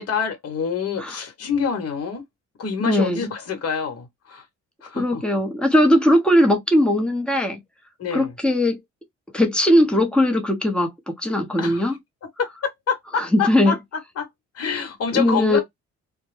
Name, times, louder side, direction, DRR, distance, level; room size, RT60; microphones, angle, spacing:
voice 1, 0.0-2.2 2.6-4.4 4.8-5.2 8.0-8.3 11.6-12.0 12.4-13.7 14.2-14.3 14.5-15.6, left 6 dB, 55° left, 1.0 m, -26 dB
voice 2, 2.8-3.2 4.9-7.6 8.1-8.8 9.3-10.9 11.2-12.0 13.1-13.7 15.1-15.6, left 1 dB, 5° left, 0.7 m, -19 dB
2.1 x 2.0 x 3.1 m
cardioid pair, 90°, 30 cm